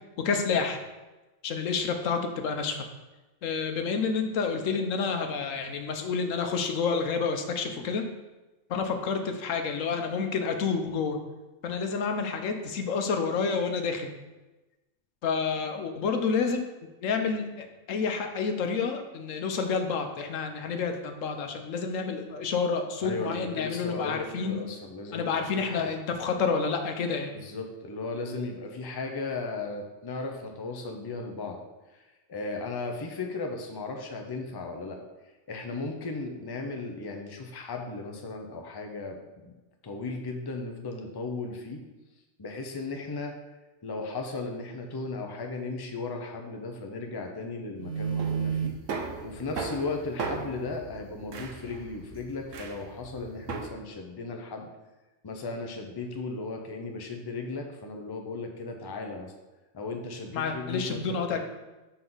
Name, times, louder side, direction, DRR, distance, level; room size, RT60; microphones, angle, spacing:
voice 1, 0.2-0.8 1.4-2.8 3.4-8.1 8.7-11.2 11.6-14.1 15.2-16.7 17.0-24.6 25.1-27.3 60.3-61.4, left 5 dB, 90° left, 5 dB, 1.1 m, -29 dB
voice 2, 23.0-25.9 27.3-31.6 31.9-32.0 32.3-35.0 35.5-39.5 39.8-41.8 42.4-43.3 43.8-48.7 49.2-54.7 55.2-59.3 59.7-61.4, left 3 dB, 25° left, 3 dB, 0.6 m, -36 dB
sound 1, 47.8-53.7, right 6 dB, 75° right, 1.2 m, -34 dB
6.1 x 5.5 x 3.9 m, 1.1 s
omnidirectional pair, 1.3 m